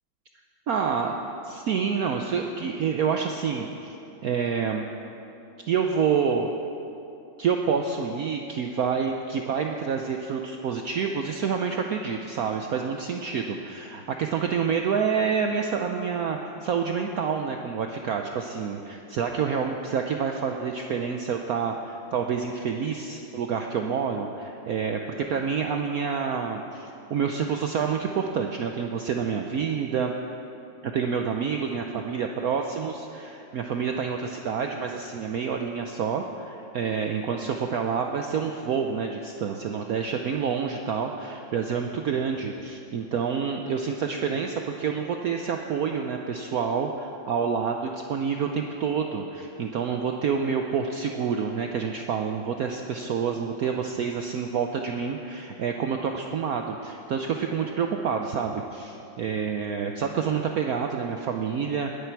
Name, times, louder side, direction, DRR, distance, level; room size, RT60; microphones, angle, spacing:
voice 1, 0.7-1.2 1.4-4.0 4.2-4.9 5.7-6.5 7.4-25.0 25.3-30.1 30.9-61.9, right 6 dB, 65° right, 3 dB, 1.0 m, -28 dB
20.5 x 10.0 x 4.6 m, 2.8 s
omnidirectional pair, 2.1 m